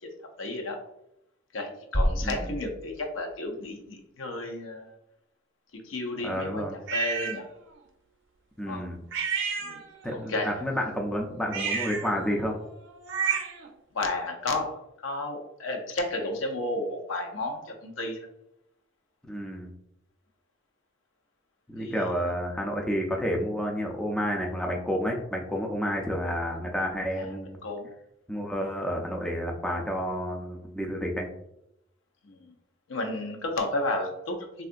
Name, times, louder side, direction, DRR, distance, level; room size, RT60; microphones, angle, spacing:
voice 1, 0.4-0.8 1.5-5.0 5.8-7.5 8.6-8.9 9.6-9.8 10.1-10.6 13.9-18.3 21.8-22.1 27.1-27.3 27.6-27.9 32.2-32.6 32.9-34.7, left 2 dB, 75° left, 3 dB, 0.6 m, -32 dB
sound 1, 1.9-3.8, equal, 40° left, 0.7 m, -30 dB
voice 2, 6.2-6.8 8.6-9.0 10.0-12.6 19.2-19.7 21.7-27.6 28.3-31.3, equal, 5° left, 0 dB, 0.3 m, -30 dB
sound 2, 6.9-7.4 9.1-10.2 11.4-13.7, right 6 dB, 65° right, 0.4 m, -31 dB
3.6 x 2.4 x 2.4 m, 0.82 s
head